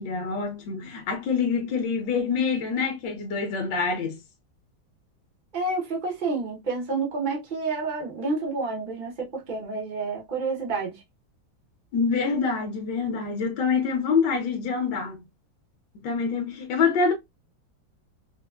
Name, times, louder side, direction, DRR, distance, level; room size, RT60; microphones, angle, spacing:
voice 1, 0.0-4.2 11.9-15.2 15.9-17.1, left 5 dB, 70° left, 1.3 m, -26 dB
voice 2, 5.5-11.0, right 3 dB, 85° right, 0.4 m, -29 dB
4.9 x 2.0 x 2.2 m
omnidirectional pair, 2.1 m